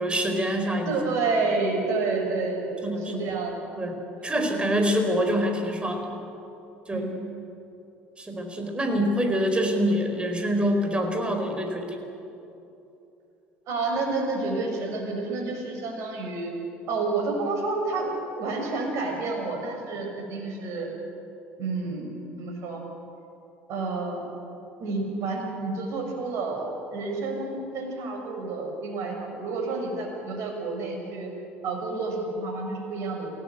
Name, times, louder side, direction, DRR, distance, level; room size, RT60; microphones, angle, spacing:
voice 1, 0.0-0.9 2.8-3.3 3.8-6.1 6.9-7.1 8.2-12.0, equal, 15° right, 4 dB, 4.9 m, -26 dB
voice 2, 0.8-3.6 6.9-7.1 13.7-16.5 16.9-18.1 18.4-20.9 21.6-22.8 23.7-24.3 24.8-31.3 31.6-33.3, right 3 dB, 55° right, 2 dB, 6.6 m, -29 dB
28.0 x 17.0 x 8.3 m, 2.9 s
figure-of-eight pair, 60°, 6 cm